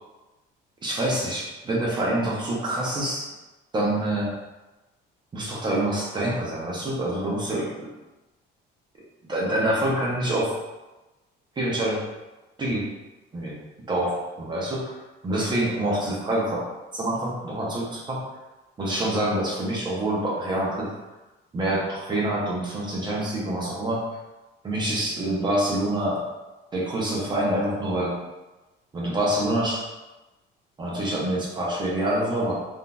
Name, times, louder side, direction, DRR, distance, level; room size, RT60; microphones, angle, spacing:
voice 1, 0.8-3.3 3.7-4.3 5.3-7.7 9.3-10.5 11.6-12.0 12.6-12.8 13.3-13.5 13.9-14.9 15.2-16.6 16.9-18.2 18.8-20.9 21.5-24.0 24.6-26.2 26.7-28.2 28.9-29.8 30.8-32.5, right 1 dB, 25° right, -4 dB, 0.7 m, -26 dB
3.6 x 2.5 x 2.2 m, 1.1 s
cardioid pair, 145°, 19 cm